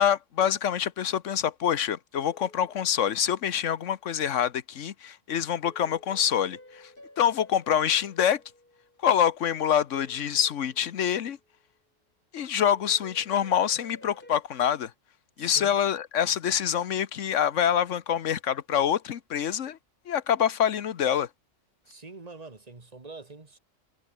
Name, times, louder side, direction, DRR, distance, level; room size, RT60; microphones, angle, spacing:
voice 1, 0.0-6.8 7.2-8.4 9.0-11.4 12.3-14.9 15.4-19.8 20.1-21.3, left 9 dB, 70° left, 1.3 m, -26 dB
sound 1, 2.2-3.7 5.6-9.3 9.9-11.4 12.6-14.4, left 1 dB, 40° left, 6.2 m, -53 dB
voice 2, 15.4-15.7 21.9-23.6, right 3 dB, 30° right, 2.0 m, -45 dB
omnidirectional pair, 1.4 m